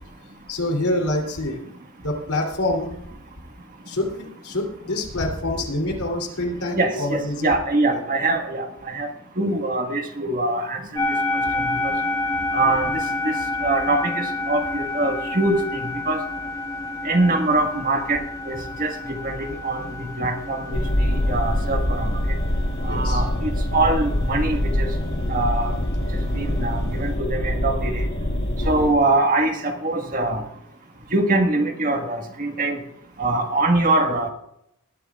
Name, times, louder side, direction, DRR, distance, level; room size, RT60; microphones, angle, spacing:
voice 1, 0.5-1.7 2.0-3.0 3.9-7.5 7.9-8.0 9.4-9.5 12.6-12.8 22.8-23.2 28.6-29.0, left 1 dB, 85° left, 1 dB, 3.3 m, -26 dB
voice 2, 6.8-9.1 9.4-10.8 11.7-11.9 12.5-12.9 13.2-13.3 13.6-16.2 17.0-18.2 18.5-22.1 22.8-23.3 23.7-24.9 25.3-25.7 26.1-28.0 28.6-30.4 31.1-32.8 33.2-34.3, right 2 dB, 40° right, 4 dB, 1.6 m, -23 dB
sound 1, 11.0-27.1, left 2 dB, 20° left, 2.8 m, -30 dB
sound 2, 20.7-28.9, left 1 dB, 50° left, 1.3 m, -24 dB
19.5 x 12.5 x 2.4 m, 0.76 s
head